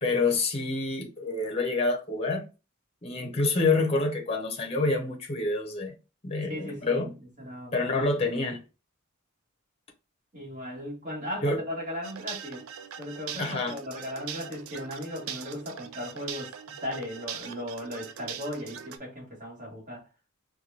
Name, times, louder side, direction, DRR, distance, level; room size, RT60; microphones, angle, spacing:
voice 1, 0.0-2.5 3.0-5.9 6.2-7.1 7.7-8.6 11.4-11.6 13.4-13.8, left 3 dB, 30° left, 0.7 m, -27 dB
voice 2, 6.5-7.9 10.3-12.7 13.0-20.1, left 1 dB, 40° right, 1.7 m, -37 dB
sound 1, 12.0-19.0, right 8 dB, 70° right, 0.4 m, -41 dB
4.3 x 2.3 x 2.7 m
head